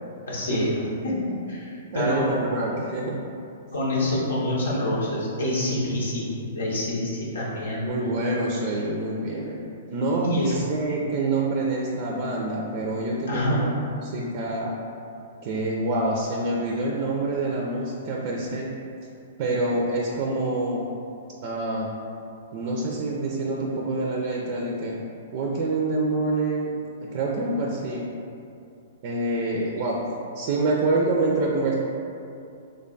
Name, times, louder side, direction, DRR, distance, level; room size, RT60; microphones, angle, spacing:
voice 1, 0.3-2.7 3.7-7.8 10.2-10.6 13.3-13.7 29.8-29.9, left 1 dB, 90° left, -5 dB, 0.7 m, -27 dB
voice 2, 1.8-3.2 7.8-9.6 9.9-10.3 10.5-13.7 14.0-14.7 15.4-18.7 19.4-20.8 21.4-21.9 22.5-24.9 25.3-26.7 27.0-28.1 29.0-30.0 30.3-31.7, right 2 dB, 50° right, -2 dB, 0.4 m, -26 dB
3.3 x 2.2 x 3.8 m, 2.6 s
hypercardioid pair, 130°, 0 cm